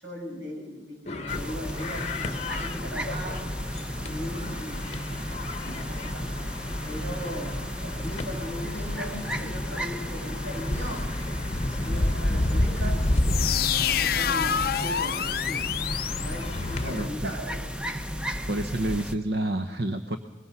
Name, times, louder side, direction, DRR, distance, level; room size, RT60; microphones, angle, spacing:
voice 1, 0.0-3.5 4.1-6.5 6.8-7.6 7.8-11.0 11.6-13.0 13.8-15.7 16.2-18.0, equal, 85° right, 0 dB, 7.2 m, -38 dB
sound 1, 1.1-17.1, left 1 dB, 35° left, 1.0 m, -32 dB
sound 2, 1.3-19.1, equal, 5° right, 0.7 m, -34 dB
sound 3, 13.2-17.0, left 9 dB, 55° left, 0.6 m, -28 dB
voice 2, 18.5-20.2, right 1 dB, 60° right, 7 dB, 1.0 m, -28 dB
23.0 x 22.0 x 5.6 m, 1.3 s
head